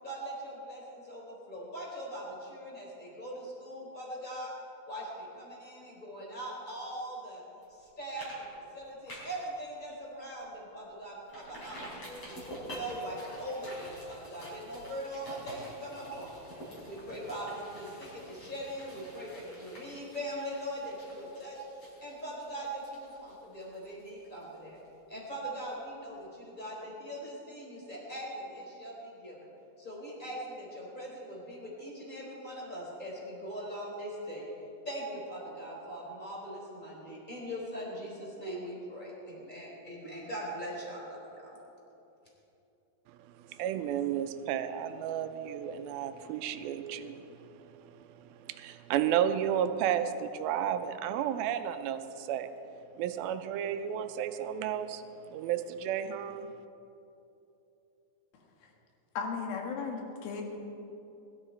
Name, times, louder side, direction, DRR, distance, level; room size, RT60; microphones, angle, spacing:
voice 1, 0.0-4.5 4.9-7.4 7.8-8.3 8.7-16.4 16.8-24.8 25.1-29.5 29.8-34.5 34.8-41.5, right 1 dB, 10° left, -3 dB, 3.7 m, -41 dB
sound 1, 7.6-7.8 8.2-8.4 8.7-9.5 9.9-10.0 10.4-10.5 11.3-24.9 25.2-25.3, equal, 35° left, 5.4 m, -48 dB
voice 2, 43.1-52.5 53.0-56.5, right 9 dB, 90° right, 9 dB, 2.5 m, -33 dB
voice 3, 59.2-60.4, left 5 dB, 75° left, 1 dB, 3.5 m, -35 dB
21.5 x 13.0 x 4.4 m, 2.9 s
omnidirectional pair, 4.3 m